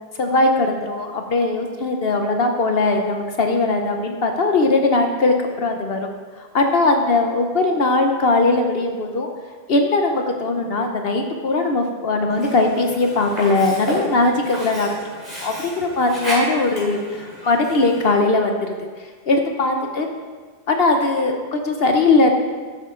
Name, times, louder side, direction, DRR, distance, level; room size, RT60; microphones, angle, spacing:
voice 1, 0.2-6.1 6.4-9.3 9.7-15.1 15.4-18.8 19.3-20.1 20.7-22.3, left 2 dB, 65° left, 4 dB, 1.1 m, -20 dB
Sink (filling or washing), 12.3-18.3, equal, 30° right, 3.8 m, -32 dB
12.5 x 8.5 x 3.8 m, 1.5 s
omnidirectional pair, 1.1 m